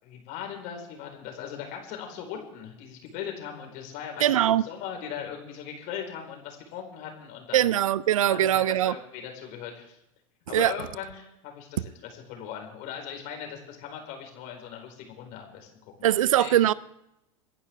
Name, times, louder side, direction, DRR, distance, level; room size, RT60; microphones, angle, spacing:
voice 1, 0.0-7.7 8.3-10.0 10.5-15.7 16.0-16.1 16.4-16.6, left 8 dB, 50° left, 4.6 m, -39 dB
voice 2, 4.2-4.6 7.5-8.9 10.5-10.7 16.0-16.7, right 12 dB, 70° right, 0.5 m, -21 dB
28.0 x 11.0 x 3.6 m
figure-of-eight pair, 85°, 18 cm